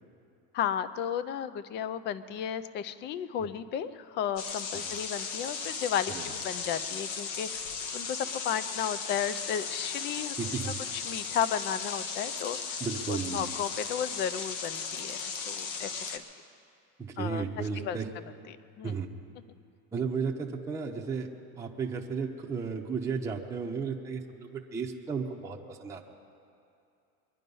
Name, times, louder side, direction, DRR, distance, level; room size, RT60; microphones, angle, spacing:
voice 1, 0.5-7.5 7.9-10.3 10.6-12.8 13.1-16.2 17.2-17.4 17.8-18.0 18.5-18.9, left 9 dB, 30° left, 15 dB, 0.4 m, -34 dB
sound 1, 4.4-16.2, left 5 dB, 60° left, 1.3 m, -36 dB
voice 2, 10.4-10.8 12.8-13.5 17.0-18.1 18.8-19.1 19.9-21.3 21.6-26.1, right 5 dB, 5° right, -2 dB, 0.8 m, -34 dB
23.0 x 10.5 x 5.4 m, 2.6 s
supercardioid pair, 150°, 40 cm